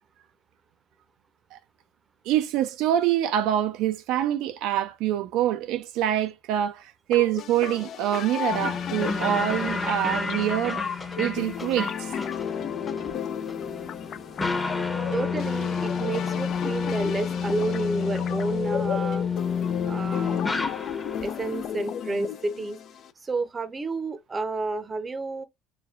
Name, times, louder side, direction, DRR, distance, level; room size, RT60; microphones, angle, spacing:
voice 1, 2.3-10.8 11.2-12.1, right 11 dB, 70° right, 0.4 m, -25 dB
sound 1, 7.1-23.1, left 9 dB, 55° left, 0.4 m, -34 dB
sound 2, 8.5-21.3, left 5 dB, 15° left, 0.8 m, -30 dB
voice 2, 15.1-19.3 19.8-20.5 21.2-22.8 23.2-25.4, right 3 dB, 25° right, 0.6 m, -30 dB
4.9 x 2.2 x 2.3 m
supercardioid pair, 95°, 0 cm